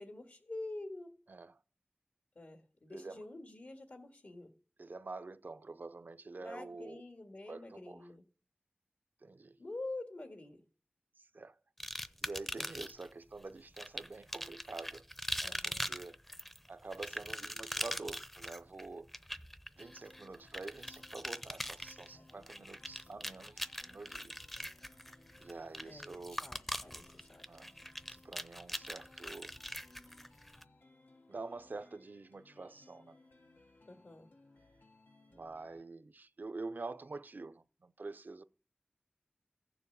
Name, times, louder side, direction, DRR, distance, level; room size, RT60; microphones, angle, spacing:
voice 1, 0.0-1.1 2.4-4.5 6.4-8.3 9.6-10.6 15.4-15.9 22.1-22.4 25.9-27.4 33.9-34.3, left 2 dB, 70° left, 2.0 m, -47 dB
voice 2, 2.9-3.2 4.8-7.0 7.5-8.1 9.2-9.5 11.3-11.6 12.2-15.0 15.4-16.2 16.7-19.1 19.8-24.3 25.4-26.4 27.5-27.7 28.1-29.5 31.3-33.2 35.3-38.4, right 3 dB, 70° right, 0.6 m, -47 dB
sound 1, 11.8-13.1 13.8-30.6, equal, 5° left, 0.6 m, -42 dB
sound 2, 19.8-35.8, left 2 dB, 90° left, 1.2 m, -64 dB
15.0 x 7.1 x 6.9 m
wide cardioid pair, 55°, 3 cm